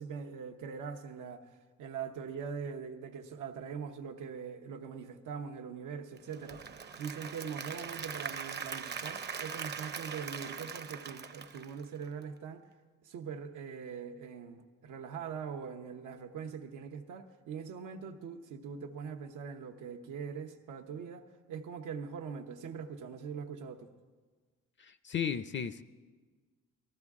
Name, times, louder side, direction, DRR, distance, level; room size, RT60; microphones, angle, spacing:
voice 1, 0.0-1.4 1.8-6.6 7.0-12.6 13.0-23.9, right 6 dB, 85° right, 1.0 m, -42 dB
Applause / Crowd, 6.2-12.2, right 6 dB, 35° right, 0.6 m, -41 dB
voice 2, 24.8-25.8, left 7 dB, 40° left, 0.5 m, -35 dB
19.0 x 14.0 x 3.6 m
cardioid pair, 90°, 30 cm